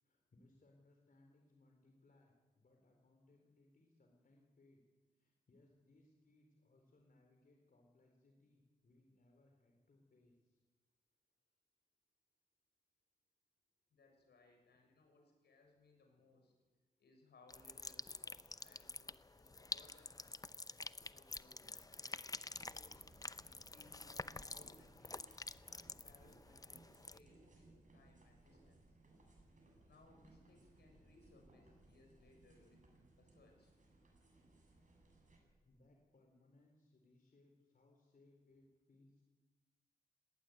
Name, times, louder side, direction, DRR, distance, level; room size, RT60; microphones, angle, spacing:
voice 1, 0.0-4.8 5.1-10.6 35.6-39.2, left 2 dB, 55° left, 2 dB, 4.0 m, -70 dB
voice 2, 13.9-16.5 17.0-20.4 21.1-23.0 23.6-25.1 25.8-26.8 27.1-28.8 29.9-32.8 33.2-33.7, left 3 dB, 75° left, 3 dB, 6.9 m, -68 dB
sound 1, 17.5-27.2, left 3 dB, 20° left, 0.7 m, -49 dB
sound 2, 22.5-35.4, right 2 dB, 45° right, 7.8 m, -65 dB
19.0 x 18.5 x 9.5 m, 1.3 s
cardioid pair, 70°, 17 cm